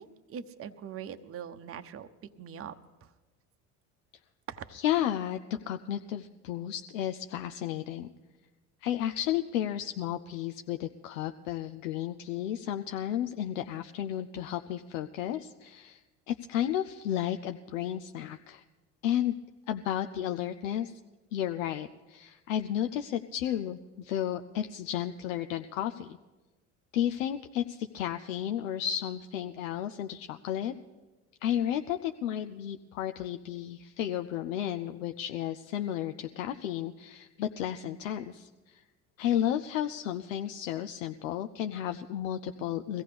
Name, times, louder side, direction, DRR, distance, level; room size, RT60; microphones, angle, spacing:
voice 1, 0.0-2.7 3.0-3.1 4.5-4.8, right 8 dB, 35° right, 9 dB, 0.8 m, -42 dB
voice 2, 4.7-8.1 8.8-16.0 16.3-18.6 19.0-19.3 19.7-21.0 21.3-26.2 26.9-30.7 31.4-38.8 39.2-43.0, left 11 dB, 85° left, 7 dB, 0.5 m, -33 dB
22.0 x 15.5 x 3.4 m, 1.2 s
hypercardioid pair, 70°, 38 cm